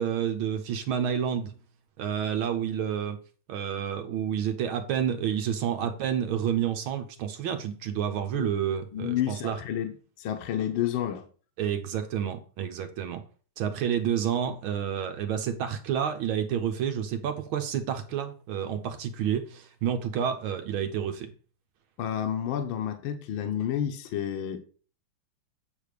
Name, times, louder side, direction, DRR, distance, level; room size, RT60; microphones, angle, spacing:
voice 1, 0.0-1.5 2.0-3.2 3.5-9.6 11.6-13.2 13.6-21.3, right 9 dB, 80° right, 1.7 m, -29 dB
voice 2, 8.9-11.3 22.0-24.6, left 10 dB, 75° left, 1.6 m, -30 dB
8.2 x 3.5 x 6.6 m
omnidirectional pair, 2.3 m